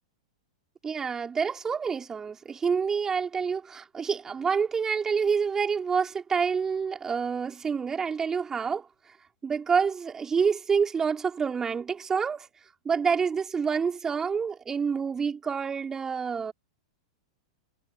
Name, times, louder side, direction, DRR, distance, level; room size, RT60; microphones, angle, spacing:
voice 1, 0.8-8.9 9.4-12.5 12.8-16.5, right 6 dB, 20° right, 4.5 m, -27 dB
figure-of-eight pair, 95°, 3 cm